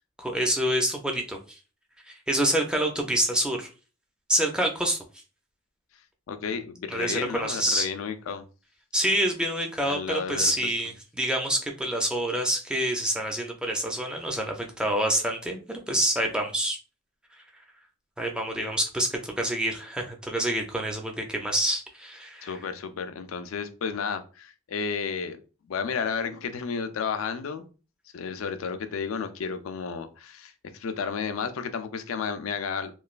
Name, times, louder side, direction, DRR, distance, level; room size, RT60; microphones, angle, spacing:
voice 1, 0.2-1.6 2.1-3.7 4.3-5.0 6.9-7.9 8.9-16.8 18.2-22.5, right 1 dB, 5° right, 2 dB, 0.4 m, -27 dB
voice 2, 6.3-8.4 9.9-10.7 22.4-25.4 25.7-27.7 28.1-33.0, left 6 dB, 80° left, 9 dB, 0.4 m, -32 dB
3.1 x 2.2 x 2.4 m, 0.34 s
head